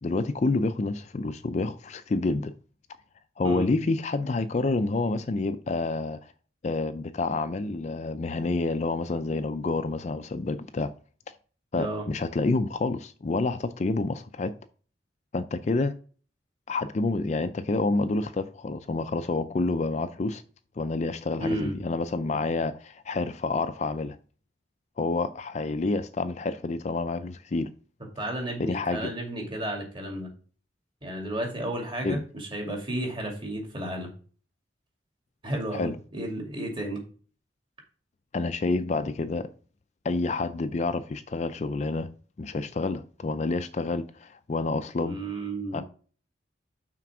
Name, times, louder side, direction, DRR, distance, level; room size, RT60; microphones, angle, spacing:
voice 1, 0.0-2.5 3.4-6.3 6.6-10.9 11.7-14.5 15.3-15.9 16.7-20.4 20.8-24.2 25.0-27.7 28.6-29.1 32.0-32.2 35.7-36.0 38.3-39.5 40.0-42.1 42.4-45.2 45.7-45.8, left 3 dB, 40° left, 0.4 m, -28 dB
voice 2, 21.4-21.8 28.2-30.3 31.0-34.1 35.4-37.0 45.0-45.8, right 1 dB, 25° right, 2.4 m, -32 dB
5.9 x 4.5 x 5.9 m
head